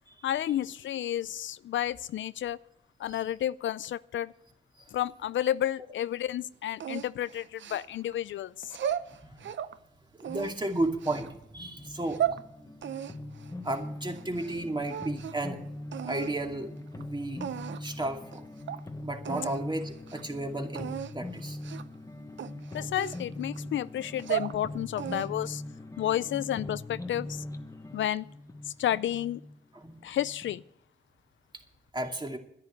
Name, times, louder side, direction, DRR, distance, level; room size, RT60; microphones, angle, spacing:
voice 1, 0.2-2.6 3.0-4.3 4.9-8.7 22.7-25.6 26.0-27.4 27.9-28.3 28.8-29.4 30.0-30.6, left 11 dB, 75° left, 0.4 m, -31 dB
sound 1, 6.8-8.1 8.6-9.8 10.2-11.3 11.9-12.4 12.8-14.6 14.8-15.5 15.9-16.3 17.0-17.1 17.4-17.9 18.3-18.4 18.7-18.8 19.2-19.6 20.0-20.2 20.7-21.1 21.6-22.0 22.4-23.6 24.0-24.6 25.0-25.5, right 10 dB, 70° right, 0.7 m, -35 dB
voice 2, 10.1-12.5 13.6-15.6 16.1-17.4 17.8-18.4 19.0-21.6 29.7-29.9 31.9-32.4, right 1 dB, 20° right, 2.5 m, -34 dB
sound 2, 11.5-30.6, left 1 dB, 15° left, 1.2 m, -42 dB
10.5 x 10.5 x 7.9 m
cardioid pair, 60°, 20 cm